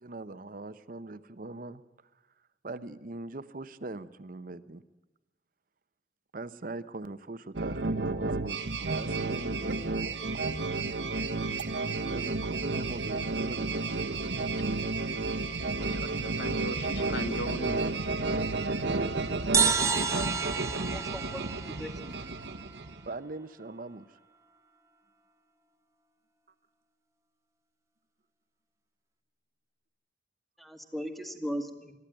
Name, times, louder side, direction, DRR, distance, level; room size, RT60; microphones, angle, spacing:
voice 1, 0.0-1.8 2.6-4.8 6.3-10.6 10.8-11.0 11.4-11.7 12.1-14.8 18.8-19.1 23.1-24.2, right 2 dB, 50° right, 13 dB, 0.8 m, -41 dB
sound 1, 7.5-23.1, right 3 dB, 80° right, 1.2 m, -32 dB
voice 2, 15.9-17.9, equal, 75° left, 9 dB, 1.7 m, -38 dB
sound 2, 19.5-23.1, right 5 dB, 15° right, 1.0 m, -30 dB
voice 3, 20.7-22.2 30.6-31.9, equal, ahead, 7 dB, 1.6 m, -38 dB
22.0 x 14.0 x 9.1 m, 1.1 s
head